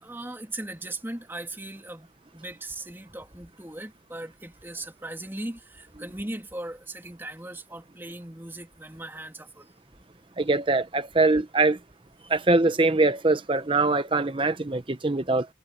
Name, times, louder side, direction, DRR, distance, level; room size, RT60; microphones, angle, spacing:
voice 1, 0.0-9.7, right 1 dB, 10° right, 3.0 m, -38 dB
voice 2, 10.4-11.8 12.3-15.5, right 3 dB, 30° right, 0.9 m, -23 dB
head